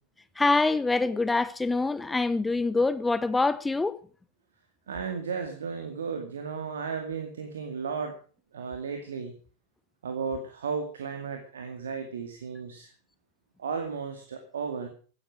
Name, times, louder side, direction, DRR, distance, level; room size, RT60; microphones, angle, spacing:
voice 1, 0.4-4.0, left 3 dB, 10° left, 0.9 m, -25 dB
voice 2, 4.9-8.1 8.5-9.3 10.0-12.9 13.6-14.9, right 5 dB, 65° right, 2.2 m, -34 dB
16.5 x 10.5 x 6.3 m
figure-of-eight pair, 90°, 0 cm